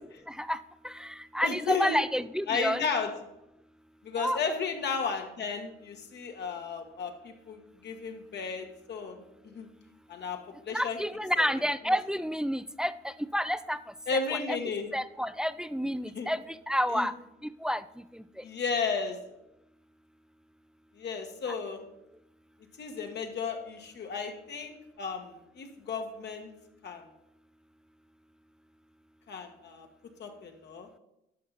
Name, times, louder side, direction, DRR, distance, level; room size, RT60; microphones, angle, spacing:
voice 1, 0.3-0.6 0.8-2.9 4.2-4.4 10.7-13.8 14.5-14.6 14.9-17.1 17.4-17.8 18.1-18.2, equal, 5° right, 14 dB, 0.3 m, -30 dB
voice 2, 1.4-2.0 2.5-3.1 4.0-9.7 10.1-10.4 10.6-11.0 11.4-11.5 14.1-14.9 16.1-16.3 16.9-17.1 18.4-19.2 21.0-21.8 22.8-26.5 26.8-27.0 29.3-29.9 30.2-30.9, left 5 dB, 60° left, 4 dB, 1.4 m, -34 dB
11.0 x 5.9 x 4.0 m, 0.88 s
cardioid pair, 90°, 20 cm